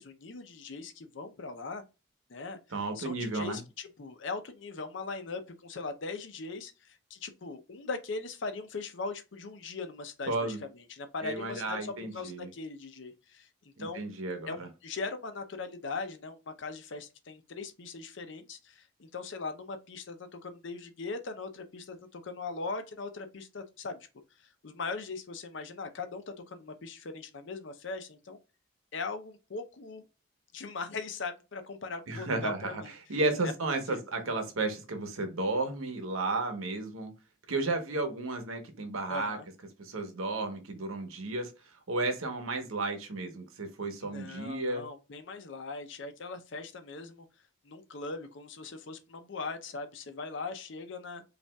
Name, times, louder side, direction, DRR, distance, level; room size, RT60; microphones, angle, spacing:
voice 1, 0.0-1.8 2.3-2.6 2.9-13.5 13.8-14.0 14.5-24.1 24.4-28.4 28.9-30.0 30.5-32.9 33.4-33.5 33.9-34.0 39.1-39.5 44.0-47.3 47.6-51.2, left 4 dB, 60° left, 0.6 m, -40 dB
voice 2, 2.7-3.6 10.3-10.6 11.2-12.5 13.8-14.7 32.1-32.8 33.1-37.1 37.5-39.4 39.8-41.5 41.9-44.8, right 2 dB, 85° right, 0.9 m, -33 dB
5.2 x 2.4 x 2.2 m
head